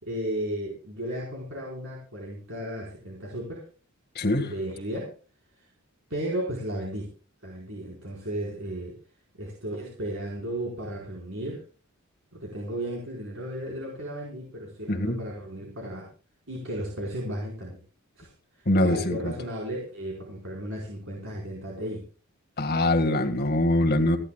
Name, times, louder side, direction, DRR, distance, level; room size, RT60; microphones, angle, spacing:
voice 1, 0.0-3.7 4.4-5.1 5.6-5.7 6.1-7.1 7.4-9.0 9.3-11.6 12.3-16.1 16.5-17.8 18.2-22.1, right 1 dB, 60° right, -3 dB, 4.7 m, -34 dB
voice 2, 4.2-4.5 14.9-15.2 18.7-19.3 22.6-24.2, left 1 dB, 45° left, 4 dB, 1.7 m, -23 dB
29.5 x 11.0 x 2.3 m, 0.34 s
head